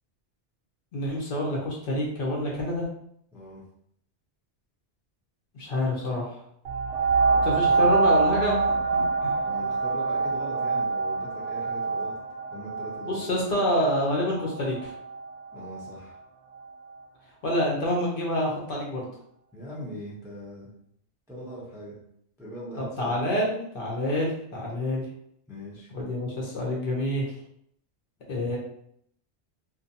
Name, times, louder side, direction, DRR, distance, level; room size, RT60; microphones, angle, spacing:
voice 1, 0.9-2.9 5.5-6.4 7.3-8.6 8.9-9.3 13.0-14.9 17.4-19.1 22.8-25.1 25.9-27.3 28.3-28.6, left 1 dB, 55° left, -3 dB, 0.8 m, -27 dB
voice 2, 3.3-3.6 7.4-7.8 9.4-12.2 12.5-13.4 15.5-16.2 19.5-20.7 21.3-22.0 22.4-23.2 25.5-25.9, equal, 5° right, -6 dB, 0.4 m, -41 dB
sound 1, 6.7-15.9 16.5-16.6, right 4 dB, 65° right, 0.7 m, -26 dB
2.6 x 2.1 x 2.6 m, 0.70 s
omnidirectional pair, 1.2 m